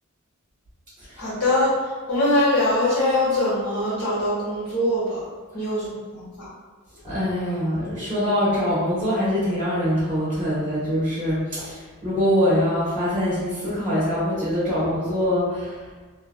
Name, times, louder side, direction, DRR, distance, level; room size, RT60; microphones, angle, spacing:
voice 1, 1.2-6.5, left 1 dB, 85° left, -10 dB, 1.4 m, -23 dB
voice 2, 7.0-15.8, equal, 20° right, -12 dB, 1.0 m, -24 dB
2.8 x 2.5 x 2.2 m, 1.3 s
head